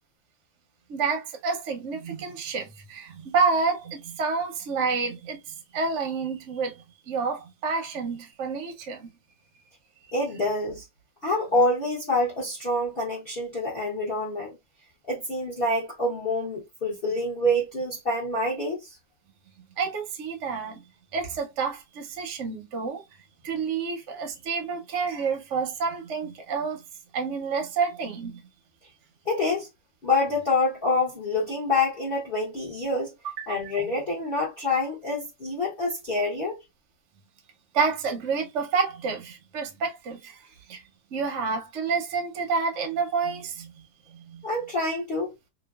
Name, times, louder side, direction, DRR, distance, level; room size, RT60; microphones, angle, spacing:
voice 1, 0.9-9.1 19.8-20.8 21.1-23.0 23.4-26.8 27.1-28.4 33.2-33.7 37.7-40.8 41.1-44.4, right 5 dB, 60° right, 0.8 m, -29 dB
voice 2, 10.1-10.9 11.2-14.6 15.1-19.0 29.2-29.7 30.0-33.1 33.5-36.6 44.4-45.3, left 2 dB, 45° left, 0.8 m, -26 dB
3.0 x 2.3 x 2.3 m
omnidirectional pair, 1.9 m